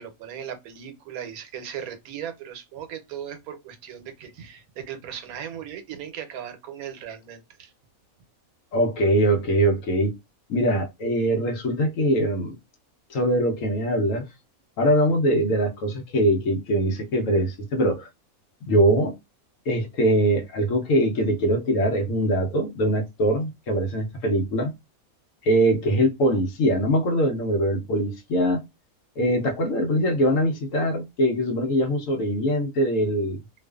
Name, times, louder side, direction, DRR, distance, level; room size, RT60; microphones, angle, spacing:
voice 1, 0.0-7.7, right 9 dB, 85° right, 1.1 m, -37 dB
voice 2, 8.7-10.2 10.5-12.6 13.1-14.2 14.8-18.1 18.7-19.2 19.7-24.7 25.4-28.6 29.2-33.4, right 1 dB, 70° left, 1.0 m, -22 dB
2.4 x 2.4 x 2.2 m
omnidirectional pair, 1.5 m